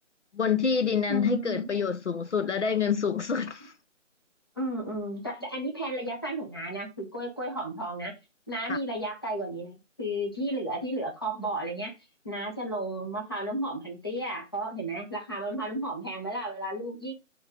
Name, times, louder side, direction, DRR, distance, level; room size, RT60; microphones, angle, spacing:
voice 1, 0.3-3.7 8.7-8.8, left 6 dB, 65° left, 0.7 m, -27 dB
voice 2, 1.1-1.7 4.6-8.1 8.5-12.0 12.2-17.1, right 1 dB, 20° left, 0.9 m, -33 dB
6.9 x 3.9 x 3.6 m
figure-of-eight pair, 180°, 38 cm